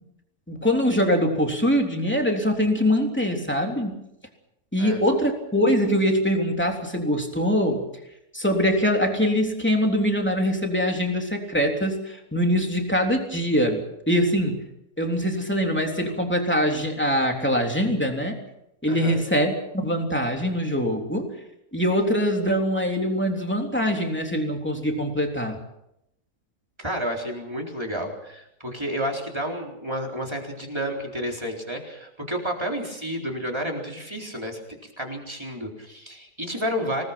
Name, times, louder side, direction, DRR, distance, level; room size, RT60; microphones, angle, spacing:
voice 1, 0.5-4.0 4.7-7.8 8.3-14.6 15.0-18.4 18.8-21.3 21.7-25.6, equal, 5° left, 2 dB, 3.4 m, -23 dB
voice 2, 18.9-19.2 26.8-37.0, equal, 20° right, 0 dB, 4.2 m, -31 dB
26.5 x 19.0 x 6.0 m, 0.82 s
omnidirectional pair, 1.5 m